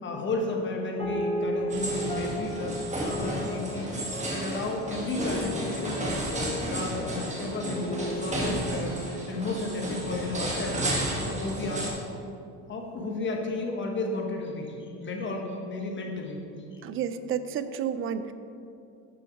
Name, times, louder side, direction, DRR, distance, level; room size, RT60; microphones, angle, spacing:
voice 1, 0.0-3.9 4.3-6.2 6.6-8.9 9.3-10.9 11.3-11.9 12.7-16.8, left 2 dB, 35° left, 1 dB, 1.2 m, -33 dB
sound 1, 1.0-10.7, equal, 15° left, 1.1 m, -35 dB
sound 2, 1.7-11.9, right 1 dB, 20° right, 1.6 m, -33 dB
voice 2, 16.8-18.3, right 8 dB, 40° right, 12 dB, 0.4 m, -31 dB
6.4 x 6.3 x 4.5 m, 2.6 s
supercardioid pair, 100°, 35 cm